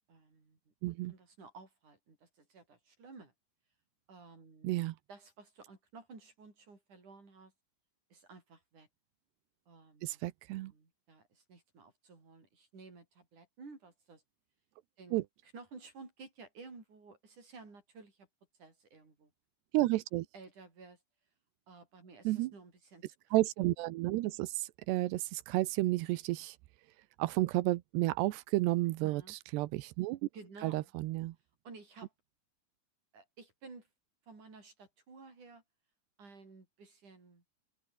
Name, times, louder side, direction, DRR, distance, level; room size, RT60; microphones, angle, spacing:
voice 1, 0.1-3.3 4.1-7.5 8.1-8.9 9.7-10.2 10.5-14.2 15.0-18.3 18.6-19.3 19.8-19.9 20.3-21.0 21.7-23.3 28.9-29.4 30.3-30.9 31.6-32.1 33.1-33.9 34.3-35.6 36.2-37.4, right 4 dB, 45° right, 8.4 m, -54 dB
voice 2, 0.8-1.1 4.6-5.0 10.0-10.7 15.1-15.2 19.7-20.3 22.2-22.5 23.3-26.6 27.2-30.2 30.6-31.3, right 18 dB, 90° right, 3.0 m, -32 dB
open air
omnidirectional pair, 4.8 m